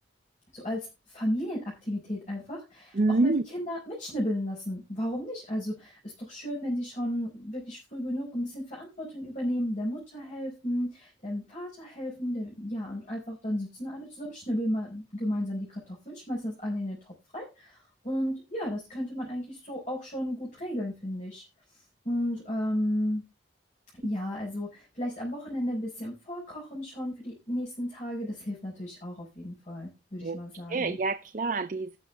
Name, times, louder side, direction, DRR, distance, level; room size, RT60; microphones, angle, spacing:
voice 1, 0.5-0.9 1.1-21.4 22.0-23.2 23.9-31.0, equal, 40° left, 4.4 m, -33 dB
voice 2, 3.0-3.4 30.2-30.4 30.7-32.0, right 2 dB, 45° right, 0.5 m, -26 dB
17.5 x 6.5 x 3.4 m
head